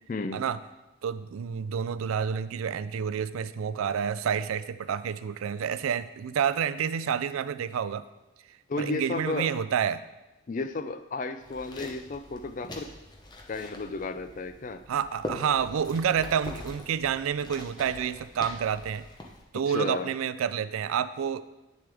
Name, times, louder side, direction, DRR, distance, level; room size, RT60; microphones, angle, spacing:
voice 1, 0.1-0.4 8.7-9.5 10.5-12.9 13.5-14.8 19.5-20.1, left 3 dB, 40° left, 11 dB, 0.4 m, -33 dB
voice 2, 1.0-8.0 8.8-10.0 14.9-19.0 19.5-21.4, right 7 dB, 90° right, 14 dB, 0.4 m, -29 dB
sound 1, 11.4-19.4, left 1 dB, 20° left, 0.8 m, -43 dB
9.1 x 6.8 x 3.4 m, 1.0 s
head